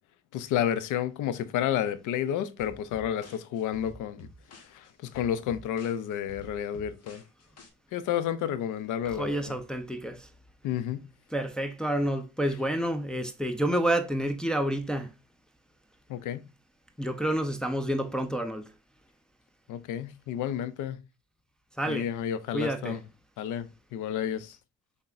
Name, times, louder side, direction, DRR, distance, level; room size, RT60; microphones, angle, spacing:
voice 1, 0.3-4.3 4.7-7.2 7.9-9.5 10.6-11.1 16.1-16.4 19.7-21.0 21.9-23.0 23.4-24.6, left 10 dB, 90° left, 0.6 m, -31 dB
sound 1, 2.6-7.7, left 1 dB, 55° left, 1.3 m, -50 dB
voice 2, 9.1-10.3 11.3-15.1 17.0-18.7 21.8-22.1 22.5-23.0, right 1 dB, 5° left, 0.6 m, -29 dB
5.6 x 3.5 x 2.5 m
cardioid pair, 90°, 30 cm